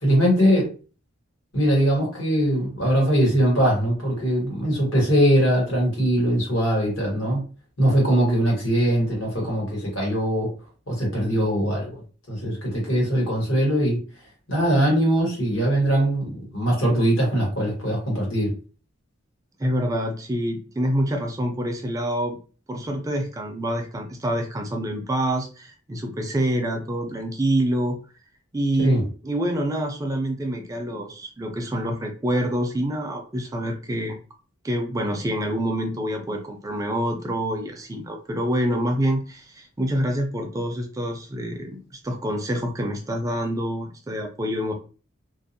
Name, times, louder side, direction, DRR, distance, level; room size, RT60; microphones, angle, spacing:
voice 1, 0.0-0.7 1.5-7.4 7.8-10.5 10.9-11.9 12.3-14.0 14.5-18.5 28.8-29.0, equal, 75° left, -2 dB, 1.4 m, -21 dB
voice 2, 19.6-22.4 22.7-28.0 28.5-29.0 29.2-34.2 34.6-44.7, equal, 15° right, 3 dB, 0.3 m, -26 dB
2.5 x 2.0 x 2.6 m, 0.37 s
head